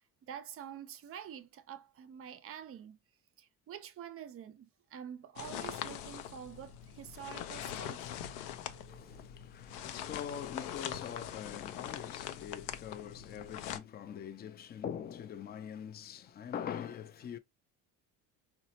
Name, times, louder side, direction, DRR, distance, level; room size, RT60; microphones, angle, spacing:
voice 1, 0.2-3.0 3.4-8.1 8.7-9.3, right 9 dB, 35° right, 0.5 m, -47 dB
sound 1, 5.4-13.8, left 10 dB, 90° left, 0.6 m, -42 dB
voice 2, 8.7-17.4, left 8 dB, 25° left, 0.4 m, -43 dB
4.0 x 2.2 x 2.7 m
cardioid pair, 115°, 38 cm